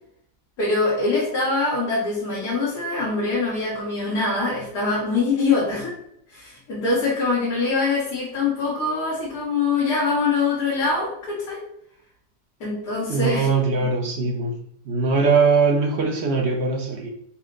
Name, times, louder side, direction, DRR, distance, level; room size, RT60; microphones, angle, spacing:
voice 1, 0.6-6.0 6.3-11.6 12.6-13.5, left 3 dB, 60° left, -7 dB, 1.6 m, -23 dB
voice 2, 13.1-14.6 14.9-17.1, right 4 dB, 55° right, 2 dB, 0.7 m, -21 dB
5.6 x 2.1 x 3.8 m, 0.72 s
omnidirectional pair, 1.8 m